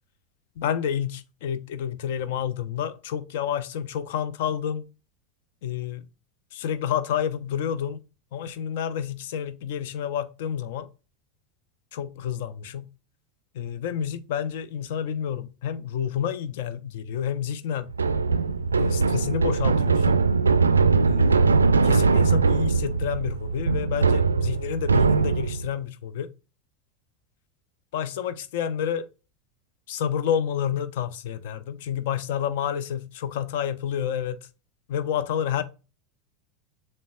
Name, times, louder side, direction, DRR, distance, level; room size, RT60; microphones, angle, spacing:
voice 1, 0.6-4.8 5.6-6.0 6.5-8.0 8.3-10.9 11.9-12.9 13.5-17.9 18.8-20.2 21.1-21.5 21.8-26.3 27.9-29.1 29.9-34.5 34.9-35.6, left 9 dB, 60° left, 0.5 m, -29 dB
sound 1, 17.9-25.7, right 4 dB, 80° right, 0.3 m, -21 dB
7.0 x 3.2 x 2.2 m
figure-of-eight pair, 80°, 0 cm